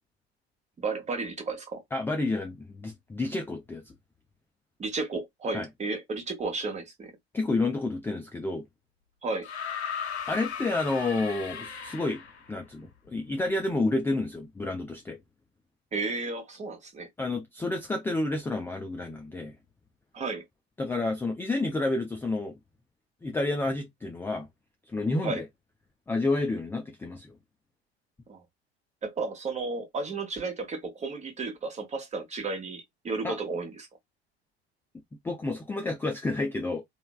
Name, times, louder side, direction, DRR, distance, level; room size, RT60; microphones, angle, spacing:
voice 1, 0.8-1.8 4.8-7.1 9.2-9.5 15.9-17.1 20.1-20.4 25.2-25.4 28.3-28.4 29.0-33.9, right 3 dB, 20° right, 1.0 m, -33 dB
voice 2, 1.9-3.9 5.5-5.7 7.3-8.7 10.3-12.2 12.5-15.2 17.2-19.6 20.8-22.6 23.2-24.5 24.9-25.4 26.1-27.3 33.2-33.4 35.2-36.8, left 2 dB, 5° left, 0.4 m, -30 dB
sound 1, 9.4-12.5 13.7-13.8, left 7 dB, 85° left, 0.5 m, -36 dB
3.1 x 2.1 x 2.3 m
figure-of-eight pair, 70°, 32 cm